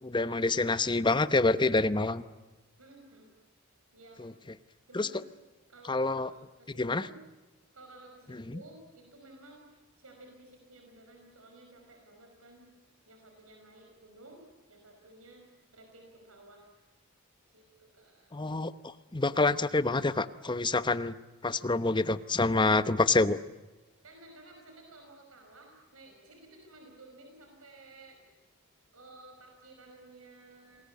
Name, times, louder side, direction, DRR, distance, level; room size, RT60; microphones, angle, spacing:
voice 1, 0.0-2.2 4.2-4.3 4.9-5.1 5.9-6.3 6.8-7.0 8.5-8.6 18.3-21.1 21.4-23.4, left 3 dB, 20° left, 13 dB, 0.9 m, -27 dB
voice 2, 2.8-3.3 3.9-4.2 4.9-5.3 5.7-7.2 7.7-9.6 10.0-12.7 13.1-14.4 14.7-15.4 15.7-16.7 17.5-18.3 24.0-28.3 28.9-30.8, right 2 dB, 90° right, 3 dB, 5.4 m, -54 dB
28.5 x 20.5 x 8.4 m, 1.2 s
head